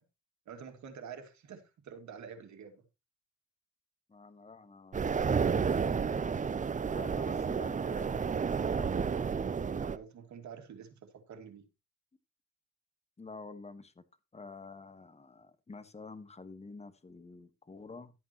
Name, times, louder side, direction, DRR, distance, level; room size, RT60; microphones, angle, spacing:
voice 1, 0.5-2.8 9.8-11.7, right 7 dB, 65° right, 2.5 m, -48 dB
voice 2, 4.1-6.4 6.9-9.0 13.2-14.0 14.3-18.1, left 3 dB, 20° left, 1.5 m, -49 dB
sound 1, 4.9-10.0, right 6 dB, 25° right, 0.6 m, -31 dB
12.5 x 8.6 x 3.1 m
cardioid pair, 90°, 30 cm